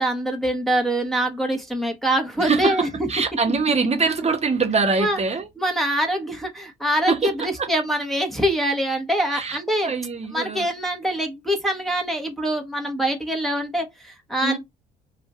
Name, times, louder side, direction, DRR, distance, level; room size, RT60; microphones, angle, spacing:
voice 1, 0.0-3.1 5.0-5.2 5.6-9.9 10.3-14.6, right 1 dB, ahead, 1.0 m, -24 dB
voice 2, 2.4-5.5 7.1-7.3 7.6-7.7 9.3-10.7 14.4-14.6, right 4 dB, 30° right, 1.0 m, -23 dB
2.8 x 2.5 x 3.5 m
hypercardioid pair, 55°, 20 cm